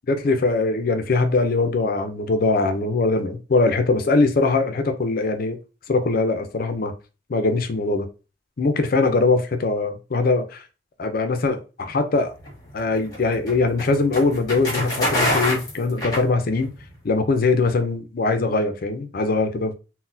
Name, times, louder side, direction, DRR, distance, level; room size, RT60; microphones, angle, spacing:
voice 1, 0.1-5.6 5.9-6.9 7.3-8.1 8.6-10.6 11.0-12.3 12.7-16.7 17.0-19.7, left 3 dB, 50° left, 0.5 m, -21 dB
sound 1, 12.4-16.8, left 1 dB, 20° left, 1.5 m, -26 dB
4.0 x 2.1 x 2.6 m
head